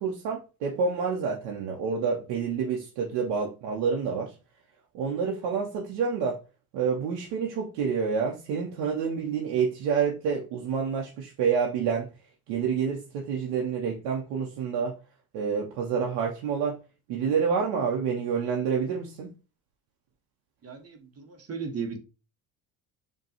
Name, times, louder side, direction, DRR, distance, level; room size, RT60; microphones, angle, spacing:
voice 1, 0.0-4.3 4.9-6.4 6.7-12.1 12.5-15.0 15.3-16.8 17.1-19.3, right 6 dB, 70° right, 0.8 m, -28 dB
voice 2, 20.6-22.0, right 5 dB, 35° right, 0.9 m, -36 dB
5.1 x 2.3 x 2.8 m
hypercardioid pair, 75°, 43 cm